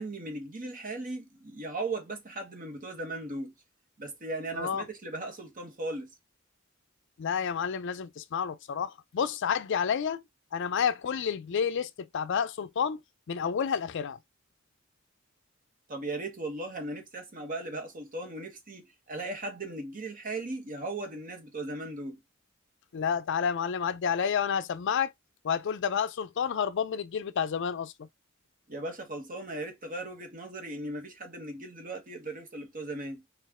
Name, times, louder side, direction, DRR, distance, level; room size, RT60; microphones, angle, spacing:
voice 1, 0.0-3.5 4.0-6.1 15.9-22.2 28.7-33.2, right 2 dB, 40° right, 1.2 m, -37 dB
voice 2, 7.2-10.2 10.5-13.0 13.3-14.2 22.9-25.1 25.4-28.1, left 7 dB, 60° left, 0.4 m, -30 dB
4.1 x 2.5 x 3.6 m
head